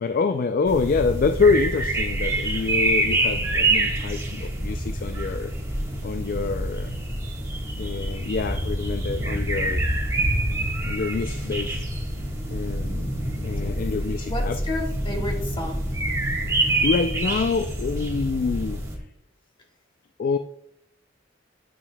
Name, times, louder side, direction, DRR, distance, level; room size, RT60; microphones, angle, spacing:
voice 1, 0.0-5.5 6.0-7.0 7.8-9.8 10.8-11.8 12.5-13.1 13.4-14.6 16.6-19.0 20.2-20.4, left 4 dB, 50° left, 8 dB, 0.3 m, -26 dB
sound 1, 0.6-19.0, right 1 dB, 15° right, 1.5 m, -26 dB
voice 2, 14.3-15.8, left 1 dB, 25° left, 1 dB, 1.5 m, -31 dB
9.8 x 7.4 x 2.2 m, 0.71 s
head